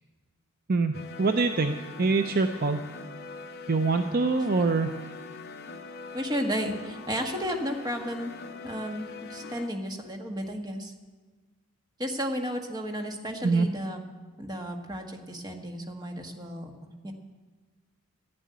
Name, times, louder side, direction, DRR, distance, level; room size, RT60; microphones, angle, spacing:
voice 1, 0.7-2.8 3.7-4.9 13.4-13.7, right 3 dB, 40° right, 7 dB, 0.5 m, -25 dB
sound 1, 0.9-9.7, left 4 dB, 45° left, 0.8 m, -43 dB
voice 2, 6.1-8.3 8.6-10.9 12.0-14.0 14.4-16.7 17.0-17.1, equal, 20° right, 3 dB, 1.3 m, -33 dB
12.5 x 7.6 x 9.4 m, 1.3 s
head